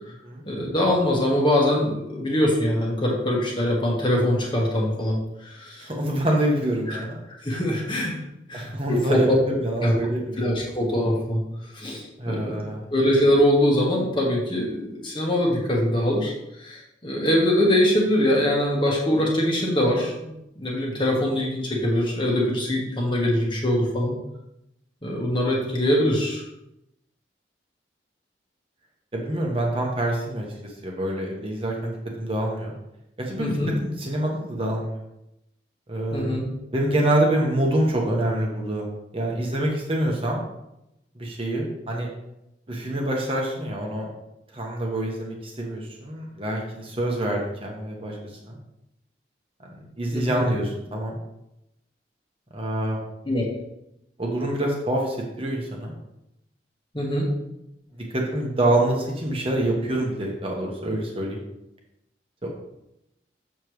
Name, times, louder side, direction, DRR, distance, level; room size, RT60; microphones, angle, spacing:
voice 1, 0.4-5.9 6.9-7.0 7.4-8.1 8.5-9.4 9.8-9.9 10.4-11.4 11.7-12.6 12.9-16.3 16.6-24.1 25.0-26.4 33.4-33.7 36.1-36.4 50.1-50.4 53.2-53.5 56.9-57.3, left 1 dB, 25° left, -2 dB, 1.4 m, -23 dB
voice 2, 5.8-7.2 8.5-10.4 12.2-12.8 29.1-32.7 33.3-35.0 35.9-36.3 36.7-38.8 39.1-40.4 41.1-42.1 42.7-44.1 44.5-48.2 48.4-48.6 49.7-51.1 52.5-53.0 54.2-55.9 57.9-61.4 62.4-62.5, right 1 dB, 30° right, -1 dB, 1.2 m, -26 dB
6.9 x 6.6 x 3.2 m, 0.86 s
head